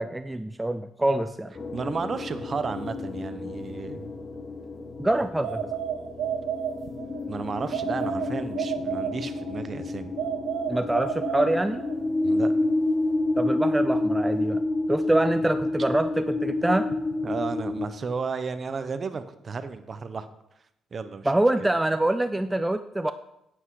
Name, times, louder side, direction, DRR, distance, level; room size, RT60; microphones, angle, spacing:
voice 1, 0.0-1.5 5.0-5.6 10.7-11.8 13.4-14.6 14.9-16.9 21.3-23.1, right 1 dB, 10° right, 10 dB, 0.4 m, -25 dB
sound 1, 1.5-17.9, left 2 dB, 35° left, 1.1 m, -29 dB
voice 2, 1.7-4.1 7.3-10.1 12.2-12.5 17.2-20.3 20.9-21.3, right 5 dB, 40° right, 11 dB, 0.9 m, -33 dB
sound 2, 5.4-7.2 7.7-9.6 10.2-12.0, right 9 dB, 85° right, 1.0 m, -31 dB
9.4 x 8.2 x 4.8 m, 0.81 s
cardioid pair, 90°, 0 cm